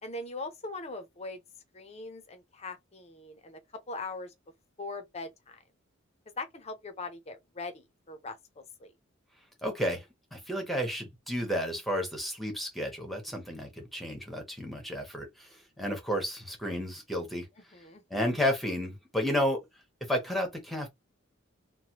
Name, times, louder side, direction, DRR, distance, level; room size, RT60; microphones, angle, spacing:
voice 1, 0.0-1.4 1.7-3.6 3.9-4.3 4.8-5.6 6.4-8.9 17.7-18.3, left 3 dB, 30° left, 0.6 m, -41 dB
voice 2, 9.6-10.0 10.3-17.5 18.1-19.6 20.0-20.9, equal, ahead, 1.0 m, -32 dB
3.2 x 2.2 x 2.9 m
head